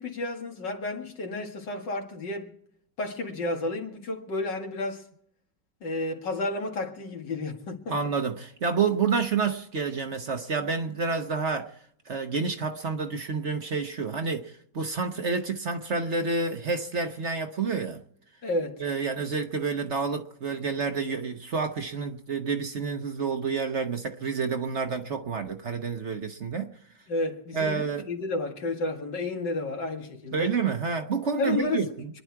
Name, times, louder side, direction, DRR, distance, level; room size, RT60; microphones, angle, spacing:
voice 1, 0.0-2.5 3.0-5.0 5.8-8.0 18.4-18.8 27.1-30.5 31.4-32.2, left 2 dB, 85° left, 2.7 m, -31 dB
voice 2, 7.9-11.7 12.1-18.0 18.8-26.7 27.5-28.1 30.3-32.1, right 5 dB, 45° right, 1.2 m, -29 dB
26.0 x 10.5 x 4.7 m
omnidirectional pair, 1.9 m